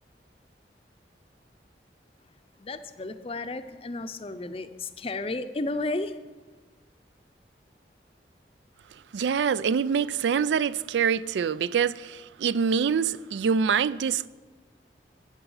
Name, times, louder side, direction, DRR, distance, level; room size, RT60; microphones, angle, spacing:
voice 1, 2.6-6.2, left 2 dB, 35° left, 0.5 m, -33 dB
voice 2, 9.1-14.3, right 6 dB, 85° right, 0.4 m, -25 dB
12.5 x 8.8 x 5.5 m
head